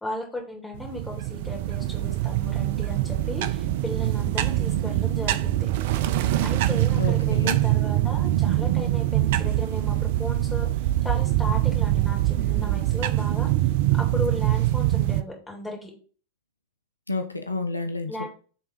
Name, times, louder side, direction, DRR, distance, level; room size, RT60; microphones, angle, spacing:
voice 1, 0.0-5.7 6.4-10.7 11.0-13.5 13.9-15.9 18.1-18.3, left 1 dB, 10° left, -1 dB, 2.3 m, -35 dB
sound 1, 0.7-15.2, right 14 dB, 50° right, 0.4 m, -24 dB
voice 2, 7.0-7.6 17.1-18.3, left 2 dB, 80° left, 8 dB, 0.5 m, -30 dB
7.9 x 3.5 x 4.2 m, 0.41 s
figure-of-eight pair, 90°, 0 cm